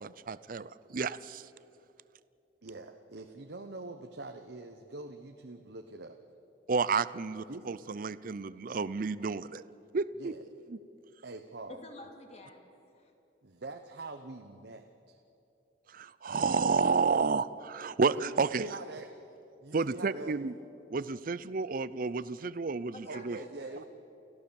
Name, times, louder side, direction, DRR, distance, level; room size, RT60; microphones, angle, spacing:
voice 1, 0.0-1.5 6.7-9.6 9.9-10.3 15.9-18.6 19.7-20.5 20.9-23.4, right 4 dB, 50° right, 17 dB, 0.5 m, -31 dB
voice 2, 2.6-6.2 7.5-7.7 10.2-10.4 11.2-11.8 13.4-15.2 18.1-19.2 19.6-20.4 23.1-23.8, right 2 dB, 65° right, 5 dB, 1.0 m, -44 dB
voice 3, 11.7-13.1 22.8-23.8, left 2 dB, 35° left, 3 dB, 2.5 m, -50 dB
29.5 x 14.5 x 7.1 m, 2.8 s
head